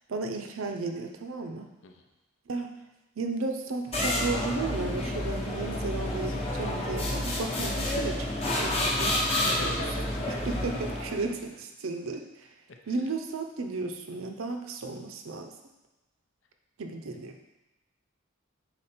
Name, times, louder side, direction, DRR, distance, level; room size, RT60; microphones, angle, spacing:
voice 1, 0.1-1.7 2.5-2.7 3.2-9.2 9.6-9.8 10.3-12.5 12.9-15.5 16.8-17.4, right 3 dB, 85° right, 5 dB, 0.6 m, -34 dB
sound 1, 3.9-11.3, left 1 dB, 30° left, 0.8 m, -29 dB
voice 2, 5.6-6.7 9.3-10.3 12.8-13.0, left 3 dB, 70° left, 4 dB, 0.6 m, -43 dB
5.1 x 4.3 x 4.3 m, 1.0 s
head